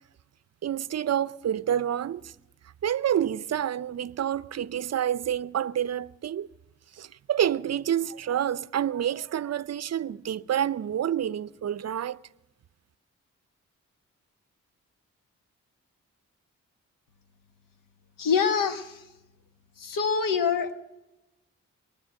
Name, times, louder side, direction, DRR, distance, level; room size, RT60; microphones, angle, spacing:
voice 1, 0.6-2.3 2.8-6.5 6.9-12.2, right 10 dB, 50° right, 0.5 m, -28 dB
voice 2, 18.2-19.0 19.8-20.7, left 6 dB, 80° left, 1.2 m, -25 dB
23.5 x 9.6 x 6.4 m
supercardioid pair, 50°, 32 cm